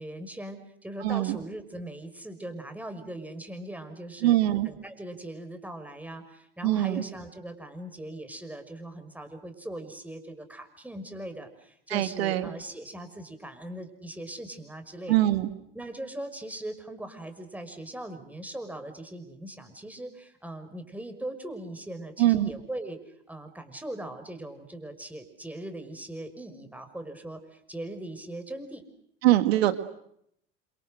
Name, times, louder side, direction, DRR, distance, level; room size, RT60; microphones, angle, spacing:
voice 1, 0.0-4.4 4.6-15.2 15.7-23.0 23.3-28.8, right 1 dB, 5° right, 8 dB, 5.9 m, -40 dB
voice 2, 1.0-1.4 4.2-4.7 6.6-7.0 11.9-12.5 15.1-15.5 22.2-22.5 29.2-29.8, right 14 dB, 80° right, 10 dB, 2.0 m, -23 dB
29.0 x 27.5 x 6.6 m, 0.72 s
hypercardioid pair, 85°, 31 cm